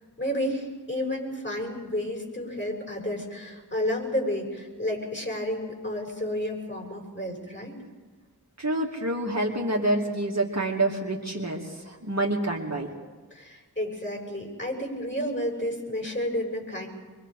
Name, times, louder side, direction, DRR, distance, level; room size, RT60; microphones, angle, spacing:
voice 1, 0.2-7.8 13.3-16.9, left 1 dB, 30° left, 0 dB, 6.3 m, -31 dB
voice 2, 8.6-11.6 11.9-12.9, right 1 dB, 45° right, -1 dB, 2.5 m, -27 dB
24.0 x 23.5 x 5.0 m, 1.4 s
wide cardioid pair, 40°, 39 cm